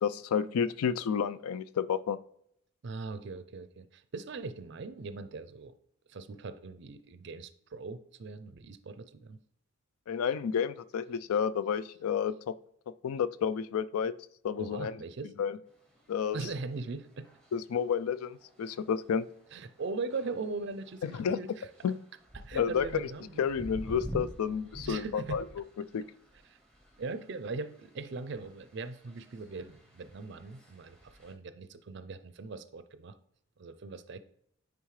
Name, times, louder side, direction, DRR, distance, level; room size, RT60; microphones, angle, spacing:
voice 1, 0.0-2.2 10.1-12.6 13.0-14.1 14.4-15.0 15.4-15.6 16.1-16.4 17.5-19.2 21.0-21.4 21.8-22.0 22.5-23.1 23.4-25.4 25.8-26.0, left 7 dB, 85° left, 16 dB, 0.3 m, -30 dB
voice 2, 2.8-5.7 6.1-9.4 14.6-15.3 16.3-17.3 19.5-21.7 22.3-23.4 24.8-25.4 26.5-26.6 27.0-33.1 33.6-34.2, right 3 dB, 50° right, 11 dB, 0.4 m, -40 dB
sound 1, 15.7-31.3, equal, 5° left, 0.8 m, -49 dB
9.3 x 3.5 x 3.2 m, 0.70 s
head